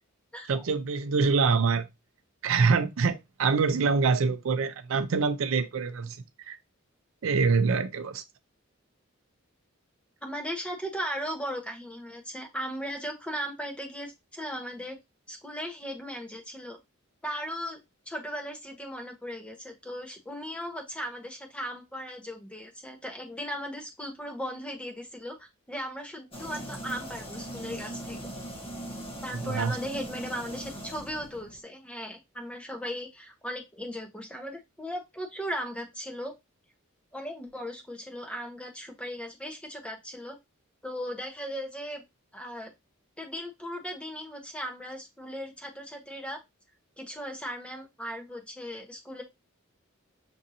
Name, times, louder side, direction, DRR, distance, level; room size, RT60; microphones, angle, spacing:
voice 1, 0.5-1.8 2.4-6.2 6.5-6.6 7.2-8.2 29.3-29.8, right 5 dB, 70° right, 0.4 m, -25 dB
voice 2, 10.2-15.0 15.3-16.8 17.2-17.8 18.1-28.2 29.2-36.3 37.1-40.4 40.8-42.0 42.3-42.7 43.2-46.4 47.0-49.2, equal, 5° left, 0.8 m, -37 dB
sound 1, 26.3-31.6, right 1 dB, 25° left, 1.1 m, -40 dB
6.1 x 2.6 x 2.7 m
head